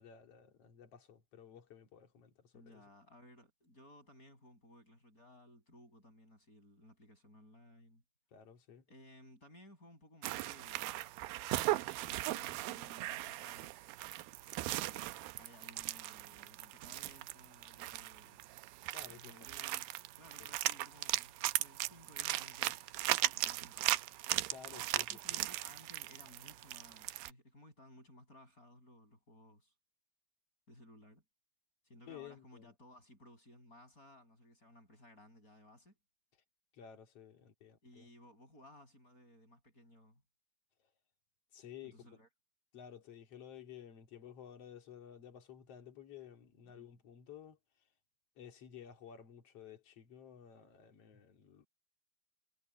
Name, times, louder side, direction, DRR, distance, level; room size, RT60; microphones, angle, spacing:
voice 1, 0.0-2.8 8.3-8.9 18.9-19.3 20.4-20.5 24.5-25.4 32.1-32.7 36.7-38.1 41.5-42.1 42.7-47.6 48.4-51.7, left 9 dB, 45° left, 2.8 m, -54 dB
voice 2, 2.5-8.0 8.9-11.0 12.1-13.8 14.7-18.4 19.1-22.8 23.3-24.0 25.1-29.7 30.7-31.2 31.8-36.0 37.8-40.2 41.8-42.3 46.6-46.9, left 1 dB, 20° left, 7.4 m, -59 dB
sound 1, 10.2-27.3, right 17 dB, 80° right, 2.4 m, -38 dB
omnidirectional pair, 4.6 m